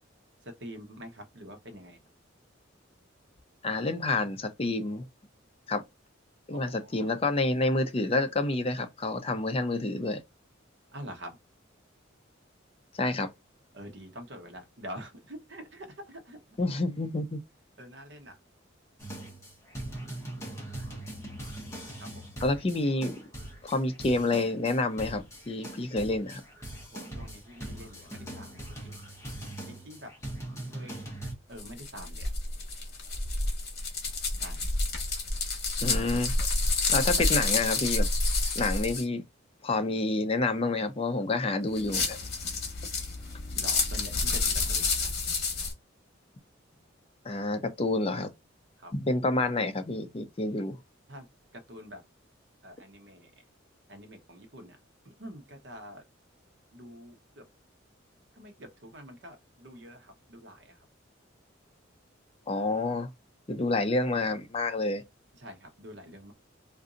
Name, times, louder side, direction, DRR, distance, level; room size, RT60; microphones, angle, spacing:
voice 1, 0.6-2.0 6.5-7.1 10.9-11.4 13.7-16.4 17.8-18.4 22.0-22.1 26.9-29.0 29.7-30.1 30.7-31.0 31.5-32.3 34.4-34.6 42.6-42.7 43.5-45.1 48.8-48.9 51.1-51.3 51.5-52.0 52.6-53.3 53.9-54.8 55.2-56.0 56.7-57.5 58.4-60.7 65.4-66.3, equal, 60° right, 0.8 m, -46 dB
voice 2, 3.6-5.1 5.7-5.8 6.5-10.2 13.0-13.3 16.6-17.4 22.4-23.1 23.6-26.4 35.8-36.5 36.9-38.1 38.6-39.2 39.6-42.2 47.2-48.3 48.9-50.8 62.5-63.1 63.5-65.0, left 2 dB, 30° left, 0.4 m, -28 dB
sound 1, 19.0-31.3, right 1 dB, 15° left, 0.8 m, -41 dB
sound 2, 31.6-39.0 41.7-45.7, left 3 dB, 55° left, 1.2 m, -29 dB
3.9 x 2.5 x 2.5 m
head